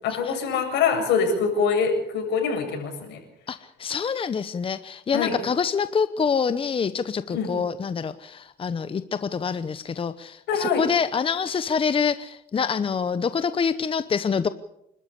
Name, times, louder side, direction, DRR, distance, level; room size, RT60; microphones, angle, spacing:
voice 1, 0.0-3.2 5.1-5.4 7.3-7.5 10.5-10.8, left 5 dB, 80° left, 3 dB, 7.5 m, -24 dB
voice 2, 3.5-14.5, left 6 dB, 30° left, 12 dB, 0.9 m, -26 dB
27.5 x 13.0 x 8.4 m, 0.81 s
cardioid pair, 100°, 18 cm